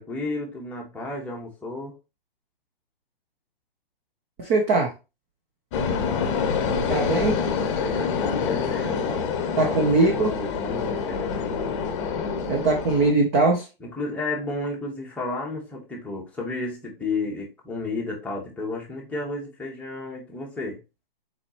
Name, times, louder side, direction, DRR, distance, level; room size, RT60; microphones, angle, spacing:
voice 1, 0.0-1.9 6.7-9.2 9.6-11.9 13.8-20.8, left 2 dB, 5° left, -2 dB, 0.9 m, -33 dB
voice 2, 4.4-4.9 6.9-7.4 9.6-10.3 12.5-13.7, right 3 dB, 15° right, 1 dB, 0.4 m, -21 dB
sound 1, 5.7-13.1, left 6 dB, 30° left, 0.8 m, -26 dB
4.2 x 4.1 x 2.9 m, 0.28 s
hypercardioid pair, 145°, 29 cm